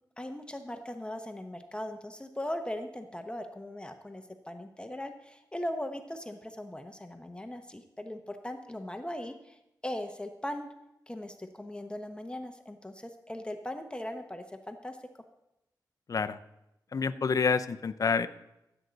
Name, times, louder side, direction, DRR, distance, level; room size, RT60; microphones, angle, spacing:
voice 1, 0.2-10.7 11.1-15.0, left 1 dB, 15° left, 6 dB, 0.8 m, -39 dB
voice 2, 16.1-16.4 16.9-18.3, left 5 dB, 50° left, 11 dB, 0.6 m, -28 dB
15.5 x 8.0 x 4.0 m, 0.89 s
cardioid pair, 80°, 8 cm